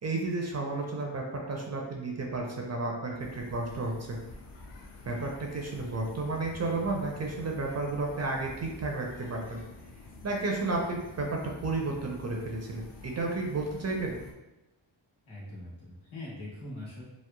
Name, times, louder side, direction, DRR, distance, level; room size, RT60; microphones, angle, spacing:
voice 1, 0.0-4.2 5.1-9.6 10.2-14.1, right 3 dB, 35° right, 0 dB, 0.4 m, -32 dB
sound 1, 3.2-14.3, left 2 dB, 45° left, 0.5 m, -48 dB
voice 2, 15.3-17.0, left 1 dB, 75° left, -6 dB, 1.2 m, -42 dB
3.0 x 2.0 x 2.2 m, 1.0 s
cardioid pair, 80°, 48 cm